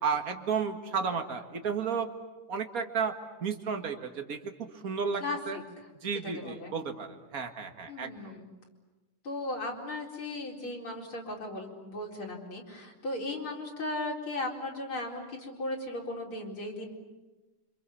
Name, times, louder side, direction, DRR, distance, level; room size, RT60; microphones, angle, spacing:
voice 1, 0.0-2.1 2.5-3.1 3.4-5.6 6.0-8.1, right 6 dB, 35° right, 5 dB, 1.7 m, -32 dB
voice 2, 5.2-5.6 6.2-6.7 7.9-8.5 9.2-16.9, left 2 dB, 40° left, -1 dB, 5.0 m, -36 dB
29.5 x 26.5 x 7.1 m, 1.2 s
omnidirectional pair, 3.6 m